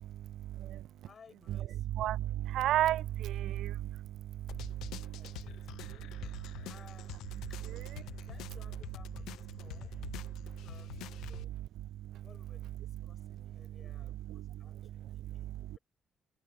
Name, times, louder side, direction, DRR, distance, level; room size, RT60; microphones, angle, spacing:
voice 1, 0.0-0.9 1.5-1.6 1.9-5.2 6.4-6.7 8.0-8.3 10.4-10.5 11.9-12.3 13.1-13.8 14.3-15.8, right 13 dB, 80° right, 0.3 m, -36 dB
voice 2, 1.1-1.9 5.2-6.1 6.6-7.2 7.5-7.6 8.2-10.0 10.4-11.6 12.2-15.8, left 6 dB, 45° left, 5.9 m, -61 dB
sound 1, 4.5-11.4, left 15 dB, 90° left, 0.7 m, -47 dB
cardioid pair, 90°, 0 cm